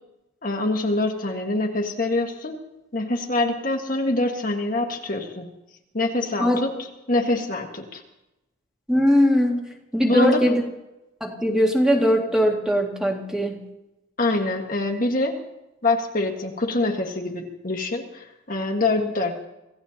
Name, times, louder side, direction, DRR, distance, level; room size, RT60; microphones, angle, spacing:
voice 1, 0.4-2.6 2.9-5.5 5.9-8.0 10.0-10.4 14.2-15.3 15.8-19.4, left 2 dB, 40° left, 2 dB, 1.6 m, -25 dB
voice 2, 8.9-9.6 9.9-10.6 11.2-13.6 19.0-19.1, equal, 5° right, 0 dB, 2.0 m, -20 dB
26.0 x 16.5 x 2.9 m, 0.95 s
head